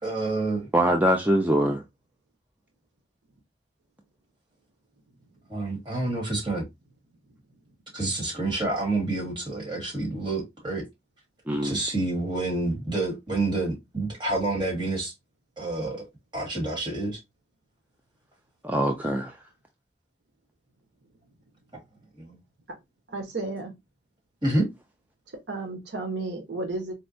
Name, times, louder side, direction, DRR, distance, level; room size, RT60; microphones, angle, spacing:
voice 1, 0.0-0.7 5.5-6.7 7.9-10.9 11.6-15.1 15.6-16.1 16.3-17.2 22.2-22.4 24.4-24.7, right 2 dB, 25° right, 1.5 m, -28 dB
voice 2, 0.7-1.8 11.5-11.8 15.8-15.9 18.6-19.4, equal, 10° right, 0.3 m, -23 dB
voice 3, 23.1-23.8 25.3-26.9, right 2 dB, 80° right, 0.9 m, -33 dB
4.4 x 2.1 x 2.5 m
head